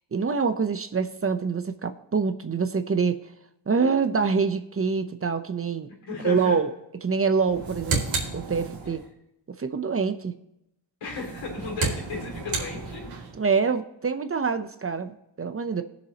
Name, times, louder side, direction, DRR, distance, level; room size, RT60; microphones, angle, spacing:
voice 1, 0.1-3.2 3.7-5.9 6.2-6.7 7.0-8.0 8.3-9.0 9.6-10.3 13.3-15.8, right 5 dB, 30° right, 10 dB, 0.7 m, -25 dB
voice 2, 6.1-6.6 11.0-13.1, left 4 dB, 85° left, 0 dB, 3.7 m, -34 dB
sound 1, 7.4-9.1 11.1-13.4, right 4 dB, 80° right, 2.8 m, -31 dB
20.0 x 7.1 x 2.9 m, 0.83 s
cardioid pair, 95°, 45 cm